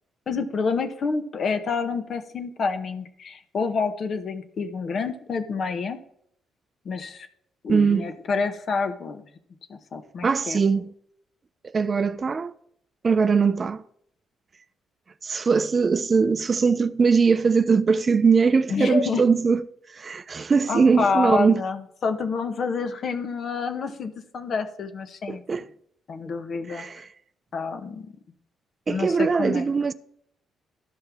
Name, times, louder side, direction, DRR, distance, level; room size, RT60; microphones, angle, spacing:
voice 1, 0.3-6.0 6.8-7.3 7.6-9.2 9.7-10.6 18.7-19.2 20.7-25.4 26.1-26.8 27.5-28.1 28.9-29.7, left 5 dB, 55° left, 0.9 m, -28 dB
voice 2, 7.7-8.1 10.2-10.9 11.7-12.5 13.0-13.8 15.2-19.6 19.9-21.6 25.3-25.7 26.7-27.0 28.9-29.9, right 5 dB, 35° right, 0.3 m, -21 dB
12.5 x 5.5 x 3.5 m
cardioid pair, 90°, 0 cm